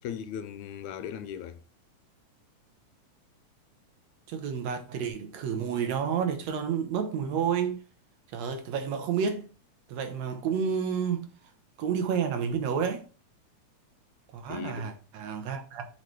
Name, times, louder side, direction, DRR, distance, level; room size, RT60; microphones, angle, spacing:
voice 1, 0.0-1.6 14.5-14.9, left 9 dB, 85° left, 2.0 m, -38 dB
voice 2, 4.3-7.8 8.3-9.5 9.9-11.3 11.8-13.0 14.3-15.9, right 7 dB, 70° right, 2.1 m, -30 dB
6.7 x 4.9 x 4.5 m
omnidirectional pair, 3.3 m